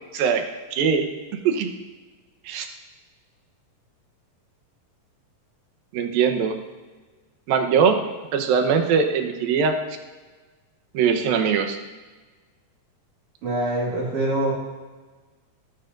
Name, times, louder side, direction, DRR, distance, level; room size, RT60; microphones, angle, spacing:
voice 1, 0.1-0.5 0.7-1.7 2.4-2.7 5.9-6.5 7.5-8.0 8.3-9.8 10.9-11.8, right 6 dB, 90° right, 6 dB, 2.9 m, -21 dB
voice 2, 13.4-14.6, right 1 dB, 60° right, -4 dB, 3.2 m, -24 dB
22.0 x 11.5 x 2.7 m, 1.3 s
omnidirectional pair, 4.0 m